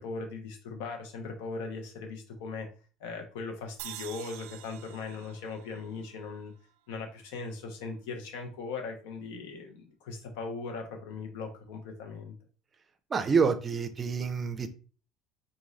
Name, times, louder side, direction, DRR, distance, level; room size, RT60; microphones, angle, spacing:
voice 1, 0.0-2.7 3.0-6.5 6.9-12.3, left 4 dB, 85° left, 1.0 m, -39 dB
sound 1, 3.8-7.1, right 14 dB, 85° right, 0.3 m, -47 dB
voice 2, 13.1-14.7, right 5 dB, 25° right, 0.5 m, -27 dB
3.1 x 2.6 x 3.9 m
cardioid pair, 130°, 0 cm